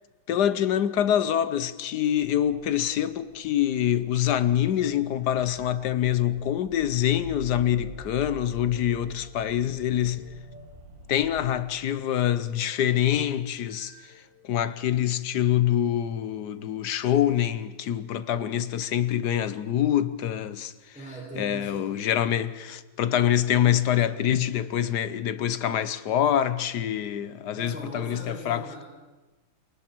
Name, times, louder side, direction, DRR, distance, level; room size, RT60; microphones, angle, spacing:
voice 1, 0.3-10.3 11.1-14.1 14.4-20.7 21.4-28.6, left 10 dB, 60° left, 1.2 m, -25 dB
sound 1, 2.1-11.5, right 1 dB, 80° right, 4.6 m, -47 dB
sound 2, 4.6-14.6 15.3-15.6 17.6-17.9 18.7-19.2 19.8-20.1 20.9-21.4 21.9-22.9, left 1 dB, 20° right, 5.8 m, -56 dB
voice 2, 20.9-22.1 27.5-28.8, right 1 dB, 5° right, 6.3 m, -40 dB
28.0 x 22.5 x 4.5 m
omnidirectional pair, 2.3 m